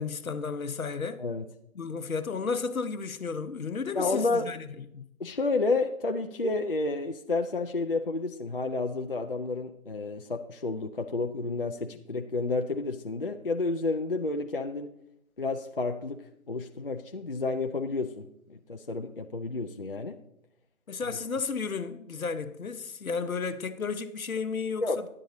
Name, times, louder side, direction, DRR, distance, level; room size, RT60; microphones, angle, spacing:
voice 1, 0.0-1.2 1.8-4.6 4.9-5.0 20.9-25.1, left 5 dB, 70° left, 0.9 m, -33 dB
voice 2, 3.9-4.5 5.2-14.9 15.4-20.2 21.1-21.2 24.8-25.0, left 3 dB, 40° left, 0.5 m, -30 dB
10.5 x 8.8 x 3.8 m
figure-of-eight pair, 155°, 43 cm